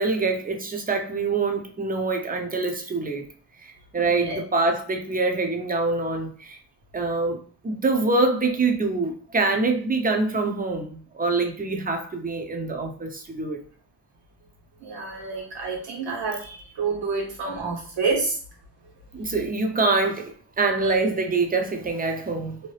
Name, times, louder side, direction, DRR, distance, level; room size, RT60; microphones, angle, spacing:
voice 1, 0.0-3.2 3.6-6.6 6.9-13.6 19.1-22.6, right 3 dB, 20° right, 0.7 m, -25 dB
voice 2, 4.0-4.4 14.8-18.3, right 4 dB, 70° right, 1.4 m, -28 dB
2.8 x 2.2 x 3.2 m
supercardioid pair, 65°, 44 cm